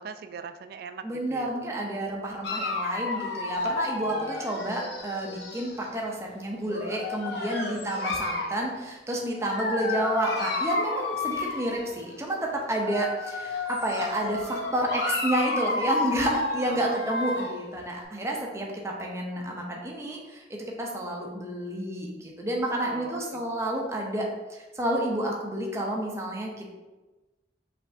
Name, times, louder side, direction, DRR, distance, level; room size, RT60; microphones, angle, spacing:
voice 1, 0.0-1.5 4.1-4.4 16.7-17.0 22.8-23.5, right 5 dB, 60° right, 10 dB, 0.3 m, -41 dB
voice 2, 1.0-26.7, right 1 dB, 15° right, -1 dB, 0.7 m, -30 dB
Dog, 2.4-5.8 6.7-8.6 9.4-12.0 12.7-17.6, left 3 dB, 70° left, 0.7 m, -31 dB
5.4 x 3.4 x 2.7 m, 1.1 s
head